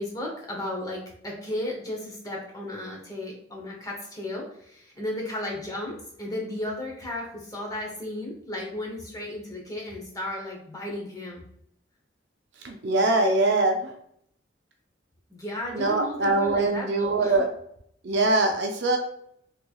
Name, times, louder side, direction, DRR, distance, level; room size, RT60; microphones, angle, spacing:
voice 1, 0.0-11.4 15.3-17.4, left 1 dB, 20° left, -2 dB, 0.8 m, -34 dB
voice 2, 12.6-13.9 15.7-17.5 18.0-19.0, right 2 dB, 60° right, 3 dB, 0.5 m, -23 dB
3.5 x 3.1 x 2.3 m, 0.69 s
head